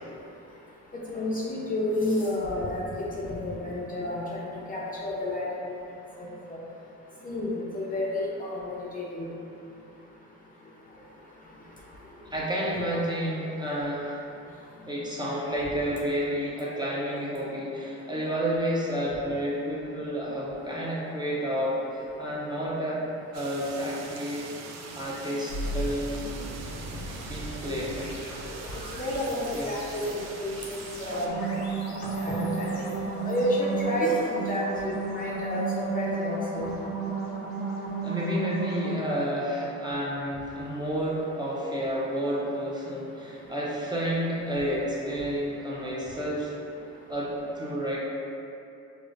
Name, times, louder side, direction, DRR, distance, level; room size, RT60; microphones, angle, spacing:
voice 1, 0.9-5.5 6.5-6.6 7.2-9.3 12.7-12.8 29.0-31.5 32.1-36.7, left 1 dB, 30° left, -5 dB, 0.5 m, -30 dB
voice 2, 12.3-14.3 14.9-23.0 23.3-24.5 25.0-26.2 27.3-28.1 29.5-29.8 38.0-46.5 47.1-47.3 47.5-48.0, equal, 15° right, -6 dB, 0.6 m, -30 dB
sound 1, 23.3-31.3, right 4 dB, 60° right, 0.4 m, -43 dB
sound 2, 25.5-36.5, equal, 70° left, 0.8 m, -40 dB
sound 3, 31.0-38.9, right 4 dB, 45° right, 1.1 m, -33 dB
4.8 x 2.1 x 2.5 m, 2.6 s
cardioid pair, 90°, 30 cm